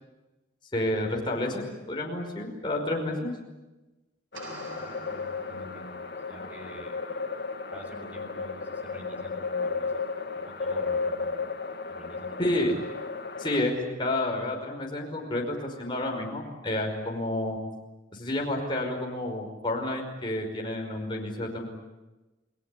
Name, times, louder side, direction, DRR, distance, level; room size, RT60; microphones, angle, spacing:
voice 1, 0.7-3.3 12.4-12.7 13.4-17.6 18.1-21.7, left 1 dB, 25° left, 0 dB, 5.4 m, -30 dB
sound 1, 4.3-13.6, left 4 dB, 55° left, 2.2 m, -34 dB
sound 2, 4.3-6.3, right 2 dB, 85° right, 8.0 m, -46 dB
voice 2, 4.8-6.0 6.3-6.9 7.7-9.9 10.3-11.4 11.9-12.5, left 1 dB, 5° right, 1 dB, 6.7 m, -46 dB
29.5 x 19.5 x 10.0 m, 1.1 s
head